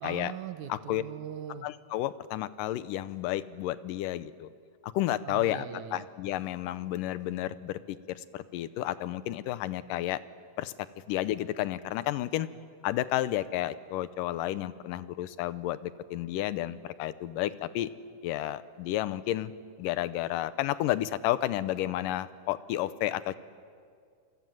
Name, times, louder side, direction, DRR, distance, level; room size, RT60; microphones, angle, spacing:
voice 1, 0.0-1.7 5.2-6.0, right 9 dB, 70° right, 9 dB, 2.3 m, -40 dB
voice 2, 0.7-1.0 1.6-4.5 4.8-10.2 10.6-10.7 11.1-12.5 12.8-17.9 18.2-19.5 19.8-23.4, left 14 dB, 90° left, 15 dB, 2.4 m, -31 dB
27.0 x 25.5 x 7.8 m, 2.2 s
omnidirectional pair, 3.7 m